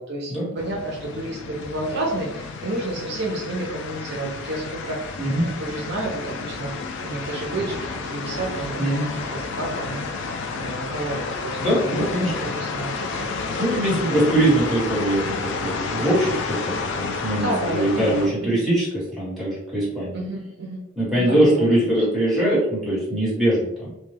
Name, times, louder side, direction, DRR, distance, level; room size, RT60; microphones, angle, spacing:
voice 1, 0.0-5.0 5.3-6.7 7.0-7.8 8.0-10.0 10.5-13.3 13.9-14.1 17.4-18.6 20.1-20.8 21.2-21.6, right 2 dB, 55° right, -1 dB, 0.5 m, -30 dB
sound 1, 0.6-18.3, left 4 dB, 65° left, 0.3 m, -31 dB
voice 2, 11.6-12.3 13.6-20.2 21.0-23.9, right 1 dB, ahead, -9 dB, 1.2 m, -22 dB
2.2 x 2.1 x 3.1 m, 0.87 s
head